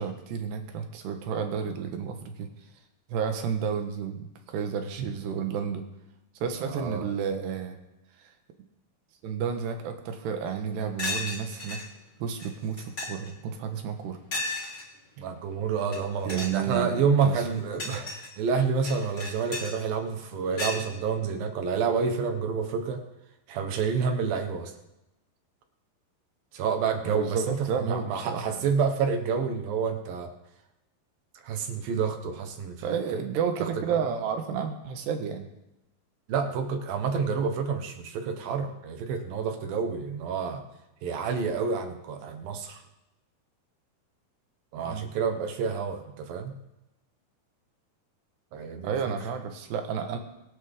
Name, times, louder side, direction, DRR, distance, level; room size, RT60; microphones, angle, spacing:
voice 1, 0.0-2.5 3.1-5.8 6.4-7.8 9.2-11.8 12.2-14.2 16.3-18.1 27.1-28.6 32.8-35.5 44.8-45.1 48.8-50.2, right 7 dB, 85° right, 5 dB, 3.5 m, -31 dB
voice 2, 6.6-7.1 15.2-23.0 23.5-24.7 26.5-30.3 31.4-33.2 33.6-34.0 36.3-40.6 41.0-42.8 44.7-46.5 48.5-49.1, right 5 dB, 70° right, 6 dB, 2.8 m, -29 dB
sound 1, 10.5-10.6 11.0-11.8 12.4-12.5 12.8-13.3 14.3-14.8 15.8-16.0 16.3-16.6 17.2-18.3 18.8-19.7 20.6-20.8, left 2 dB, 20° left, 2.4 m, -34 dB
24.0 x 10.0 x 3.7 m, 0.92 s
omnidirectional pair, 4.7 m